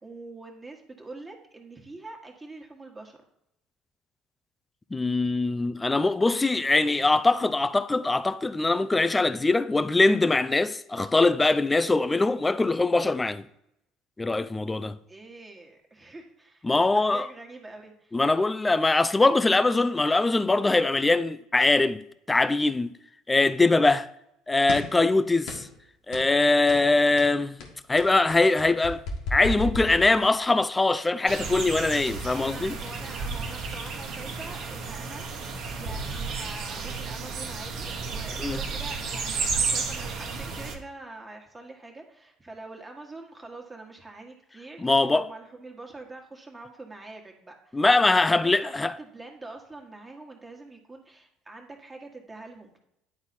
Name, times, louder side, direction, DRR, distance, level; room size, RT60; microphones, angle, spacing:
voice 1, 0.0-3.2 15.1-16.7 16.9-18.2 32.3-47.8 48.2-52.8, right 2 dB, 20° right, 1.6 m, -44 dB
voice 2, 4.9-13.5 14.2-15.0 16.6-17.3 18.1-22.0 22.3-22.9 23.3-24.1 24.5-25.7 26.1-27.6 27.9-29.0 29.3-32.8 38.4-38.6 44.8-45.2 47.7-48.9, left 2 dB, 15° left, 0.4 m, -22 dB
sound 1, 24.7-25.0 25.5-25.8 26.1-26.3 26.7-26.9 27.2-30.5, left 2 dB, 70° left, 1.6 m, -35 dB
sound 2, 31.3-40.8, right 4 dB, 55° right, 1.2 m, -32 dB
9.6 x 4.1 x 4.3 m
hypercardioid pair, 70°, 0 cm